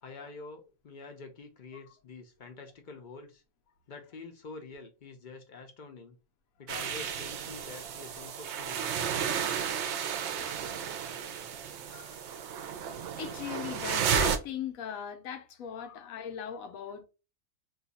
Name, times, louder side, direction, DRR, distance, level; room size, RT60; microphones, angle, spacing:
voice 1, 0.0-3.4 3.9-6.2 6.6-8.9, left 4 dB, 55° left, 0.5 m, -47 dB
sound 1, 6.7-14.4, right 7 dB, 65° right, 0.7 m, -33 dB
voice 2, 13.2-17.0, left 8 dB, 85° left, 1.1 m, -39 dB
2.7 x 2.3 x 3.9 m
omnidirectional pair, 1.4 m